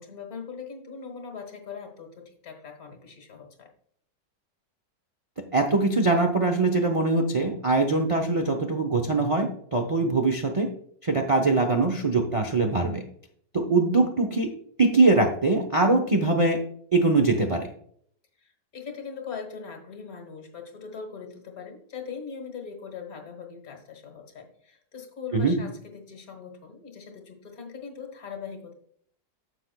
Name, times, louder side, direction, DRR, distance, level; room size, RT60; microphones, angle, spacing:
voice 1, 0.0-3.7 18.4-28.7, left 6 dB, 55° left, 4 dB, 1.8 m, -40 dB
voice 2, 5.5-10.7 11.0-13.0 13.5-14.5 14.8-16.6 16.9-17.7 25.3-25.6, right 3 dB, 45° right, 2 dB, 0.4 m, -22 dB
9.9 x 7.2 x 2.3 m, 0.64 s
omnidirectional pair, 1.9 m